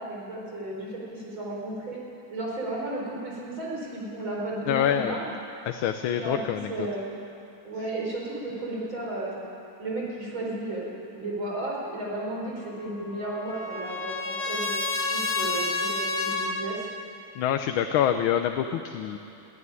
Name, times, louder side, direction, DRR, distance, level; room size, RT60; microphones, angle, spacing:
voice 1, 0.0-2.0 2.3-5.3 6.2-7.1 7.6-9.5 9.8-14.8 15.1-16.9, right 2 dB, 70° right, -3 dB, 5.5 m, -34 dB
voice 2, 4.7-5.2 5.6-6.9 17.3-19.2, left 9 dB, 80° left, 7 dB, 1.6 m, -26 dB
Trumpet, 12.8-16.7, left 3 dB, 45° left, 2.2 m, -30 dB
22.0 x 15.0 x 9.7 m, 2.8 s
omnidirectional pair, 2.3 m